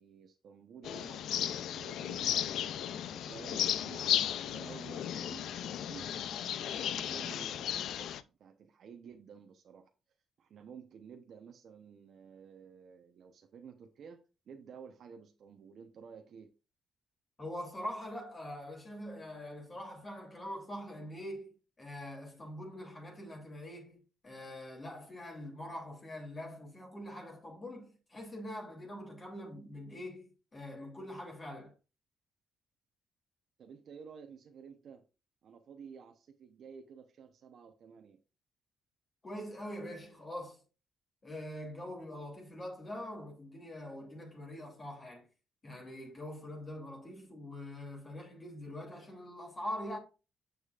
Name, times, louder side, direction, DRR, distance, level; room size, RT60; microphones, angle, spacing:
voice 1, 0.0-2.6 2.9-9.9 10.4-16.5 33.6-35.0 35.4-38.2, right 6 dB, 65° right, 0.8 m, -52 dB
sound 1, 0.8-8.2, left 10 dB, 75° left, 0.4 m, -35 dB
voice 2, 17.4-31.7 39.2-40.6 41.2-45.2 45.6-50.0, left 1 dB, 30° left, 2.9 m, -44 dB
7.2 x 6.6 x 2.4 m
cardioid pair, 90°, 0 cm